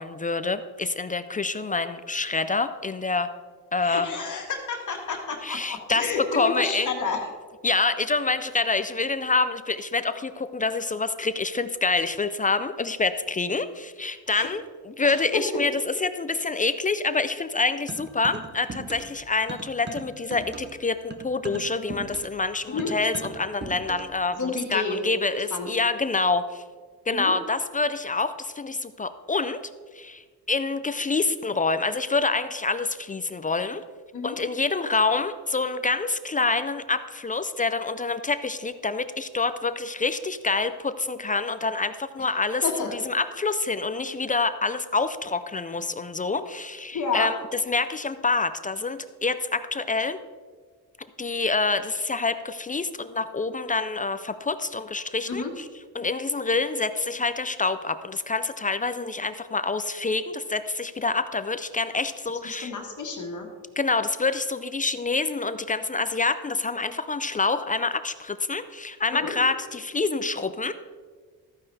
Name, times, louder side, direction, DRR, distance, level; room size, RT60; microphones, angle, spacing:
voice 1, 0.0-3.3 3.7-4.1 5.4-6.1 6.3-6.9 7.6-26.6 27.1-29.6 29.9-33.8 34.2-50.2 51.2-55.7 55.9-62.7 63.8-70.7, left 3 dB, 20° left, 12 dB, 0.4 m, -27 dB
voice 2, 3.8-7.3 14.3-14.5 15.1-15.6 22.7-22.9 24.4-25.0 25.5-25.7 27.1-27.3 34.1-34.4 42.6-43.0 46.9-47.3 55.3-55.5 62.4-63.5 69.1-69.3, left 4 dB, 50° left, 1 dB, 1.7 m, -30 dB
sound 1, 17.9-19.2 19.5-24.2, right 4 dB, 25° right, 0.9 m, -39 dB
13.5 x 9.6 x 3.3 m, 1.5 s
cardioid pair, 125°, 39 cm